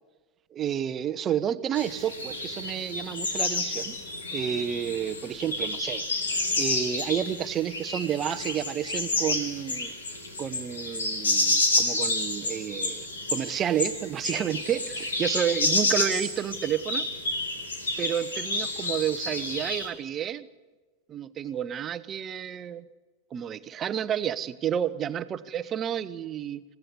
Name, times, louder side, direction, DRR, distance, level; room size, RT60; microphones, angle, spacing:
voice 1, 0.5-4.0 4.3-9.9 10.4-17.1 18.0-20.5 21.1-22.9 23.3-26.6, right 9 dB, 25° right, 13 dB, 1.0 m, -30 dB
sound 1, 1.7-19.9, left 2 dB, 70° left, 4.0 m, -30 dB
27.5 x 16.5 x 8.3 m, 1.3 s
figure-of-eight pair, 90°, 0 cm